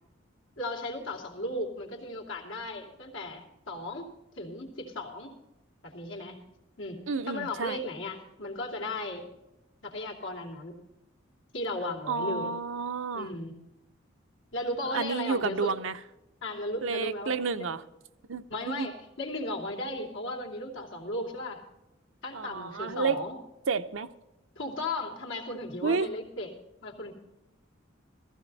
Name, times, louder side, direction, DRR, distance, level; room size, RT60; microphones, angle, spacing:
voice 1, 0.6-4.1 4.4-5.3 5.8-6.4 6.8-7.0 7.3-9.3 9.8-10.8 11.5-12.5 13.1-13.5 14.5-15.7 16.4-17.7 18.5-21.6 22.2-23.4 24.6-26.5 26.8-27.1, left 1 dB, 80° left, 0 dB, 2.8 m, -36 dB
voice 2, 7.1-7.8 12.1-13.3 14.9-16.0 16.8-17.8 18.3-18.9 22.3-23.2 23.7-24.1 25.8-26.1, right 4 dB, 85° right, 10 dB, 0.7 m, -30 dB
15.0 x 15.0 x 4.1 m, 0.94 s
head